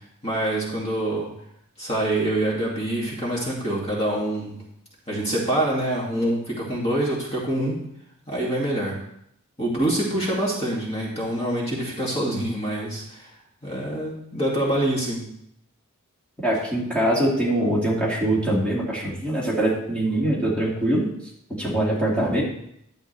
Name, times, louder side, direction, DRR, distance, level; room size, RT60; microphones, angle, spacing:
voice 1, 0.2-1.3 1.8-4.6 5.1-7.8 8.3-9.0 9.6-13.3 13.6-15.3, right 1 dB, 30° left, -4 dB, 2.3 m, -25 dB
voice 2, 16.4-21.1 21.5-22.4, right 1 dB, 5° left, -6 dB, 2.4 m, -23 dB
12.0 x 8.0 x 3.4 m, 0.73 s
head